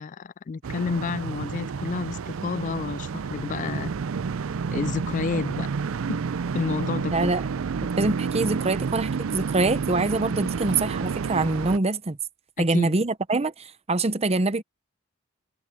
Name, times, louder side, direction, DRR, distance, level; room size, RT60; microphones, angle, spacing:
voice 1, 0.0-3.9 4.7-5.7 6.1-6.2 6.5-7.4 12.6-12.9, left 4 dB, 40° left, 0.3 m, -30 dB
sound 1, 0.6-11.8, right 5 dB, 70° right, 0.4 m, -30 dB
voice 2, 7.1-7.5 8.0-12.2 12.6-14.6, right 2 dB, 30° right, 0.8 m, -24 dB
head